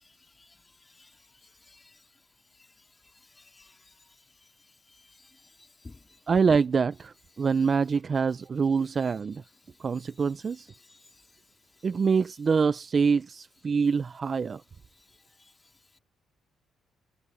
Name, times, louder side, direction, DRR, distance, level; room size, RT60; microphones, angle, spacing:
voice 1, 0.4-1.1 1.4-2.0 3.2-3.9 4.4-6.2 10.9-11.0, left 3 dB, 25° left, 3.2 m, -55 dB
voice 2, 6.3-9.4 9.8-10.7 11.8-14.6, right 5 dB, 40° right, 0.5 m, -25 dB
cardioid pair, 90°, 0 cm